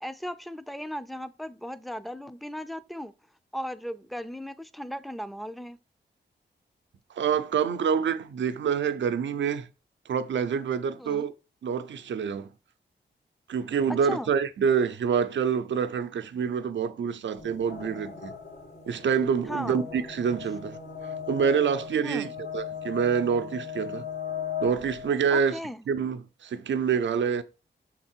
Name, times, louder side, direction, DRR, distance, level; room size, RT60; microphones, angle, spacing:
voice 1, 0.0-3.1 3.5-5.8 11.0-11.3 14.0-14.3 19.5-19.9 22.0-22.3 25.3-25.8, equal, ahead, 0.5 m, -36 dB
voice 2, 7.2-9.7 10.1-11.3 11.6-12.5 13.5-18.3 18.9-20.8 21.3-24.0 24.6-25.6 25.9-27.4, right 7 dB, 80° right, 0.7 m, -27 dB
sound 1, 17.4-25.1, left 7 dB, 85° left, 2.5 m, -38 dB
6.4 x 4.0 x 4.5 m
wide cardioid pair, 85°, 19 cm